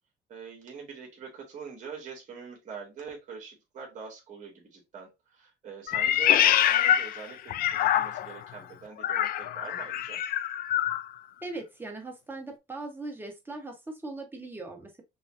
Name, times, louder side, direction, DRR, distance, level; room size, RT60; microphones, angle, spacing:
voice 1, 0.3-10.2, right 6 dB, 45° right, 1.9 m, -44 dB
Meow, 5.9-8.4 9.0-11.0, left 11 dB, 60° left, 0.4 m, -25 dB
voice 2, 11.4-15.0, right 2 dB, 10° right, 1.3 m, -39 dB
5.5 x 2.3 x 2.7 m
cardioid pair, 110°, 17 cm